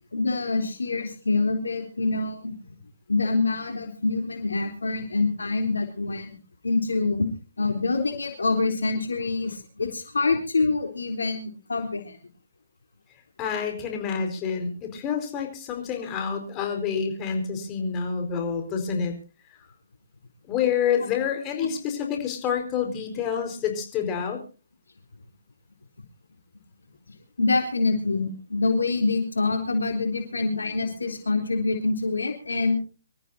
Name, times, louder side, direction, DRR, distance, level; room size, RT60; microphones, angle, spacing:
voice 1, 0.1-2.6 3.1-6.3 6.6-7.3 7.6-12.2 21.6-21.7 27.4-32.8, left 3 dB, 90° left, 4 dB, 3.6 m, -25 dB
voice 2, 13.4-19.1 20.5-24.4, left 7 dB, 20° left, 3 dB, 4.7 m, -28 dB
26.0 x 14.0 x 2.7 m, 0.35 s
hypercardioid pair, 145°, 0 cm